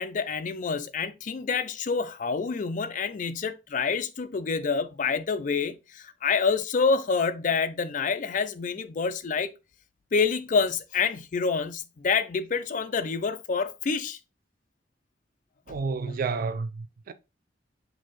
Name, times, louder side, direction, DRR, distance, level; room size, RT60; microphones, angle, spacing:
voice 1, 0.0-9.5 10.1-14.2 15.7-15.8, left 5 dB, 45° left, 0.4 m, -27 dB
voice 2, 15.7-17.1, right 4 dB, 50° right, 0.4 m, -30 dB
6.3 x 2.7 x 3.0 m
head